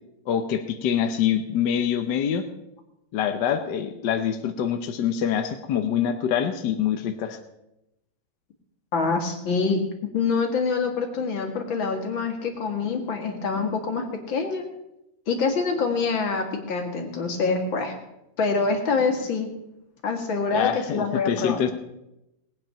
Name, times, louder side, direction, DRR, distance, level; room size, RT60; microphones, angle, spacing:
voice 1, 0.3-2.5 3.1-7.4 20.5-21.7, left 9 dB, 70° left, 7 dB, 1.4 m, -25 dB
voice 2, 8.9-9.8 10.1-14.6 15.3-18.0 18.4-19.5 20.0-21.6, left 4 dB, 90° left, 4 dB, 2.6 m, -25 dB
19.5 x 9.0 x 5.7 m, 0.89 s
omnidirectional pair, 2.0 m